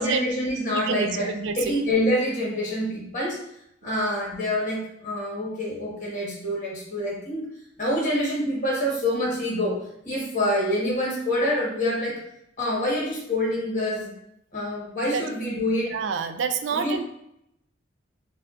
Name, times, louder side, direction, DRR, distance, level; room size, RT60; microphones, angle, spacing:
voice 1, 0.0-1.3 1.6-3.4 3.8-7.4 7.8-9.8 10.0-12.1 12.6-14.1 14.5-15.9 16.7-17.0, left 1 dB, 40° left, -5 dB, 1.4 m, -26 dB
voice 2, 15.9-17.0, right 6 dB, 75° right, 8 dB, 0.4 m, -27 dB
5.5 x 2.4 x 2.5 m, 0.78 s
head